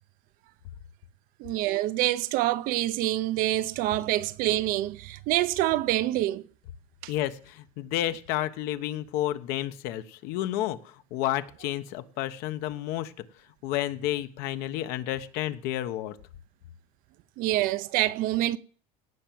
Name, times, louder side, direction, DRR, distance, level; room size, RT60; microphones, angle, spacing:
voice 1, 1.4-6.4 7.0-7.1 17.4-18.6, right 15 dB, 50° right, 0.7 m, -26 dB
voice 2, 7.1-13.1 13.6-16.2, left 13 dB, 60° left, 1.2 m, -31 dB
17.5 x 6.0 x 7.6 m
cardioid pair, 155°, 18 cm